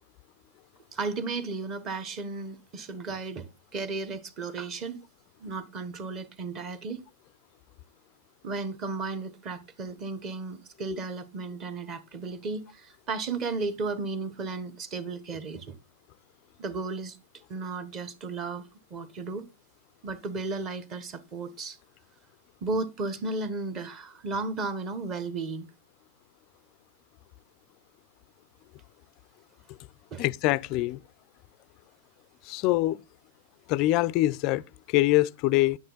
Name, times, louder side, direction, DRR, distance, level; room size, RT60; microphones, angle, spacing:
voice 1, 0.9-5.0 5.4-7.0 8.4-15.8 16.6-17.2 17.5-19.5 20.0-21.8 22.6-25.7 30.1-30.2, right 3 dB, 20° right, 1.1 m, -34 dB
voice 2, 30.2-31.0 32.5-33.0 33.7-35.8, left 17 dB, 30° left, 0.4 m, -24 dB
10.0 x 8.9 x 3.9 m
supercardioid pair, 165°, 0 cm